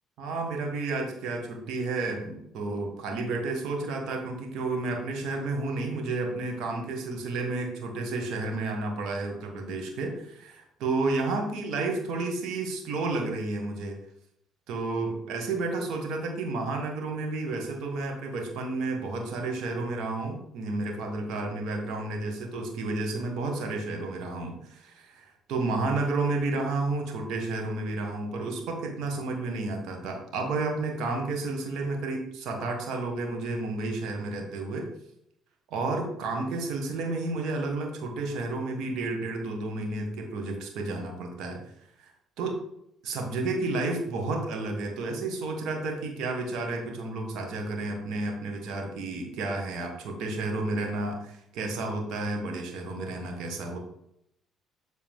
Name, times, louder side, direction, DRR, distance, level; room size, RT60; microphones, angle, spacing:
voice 1, 0.2-13.9 14.7-34.9 35.7-41.6 42.0-42.1 42.4-42.6 43.0-53.8, right 3 dB, 70° right, 2 dB, 1.6 m, -31 dB
7.6 x 4.1 x 3.7 m, 0.78 s
supercardioid pair, 65°, 0 cm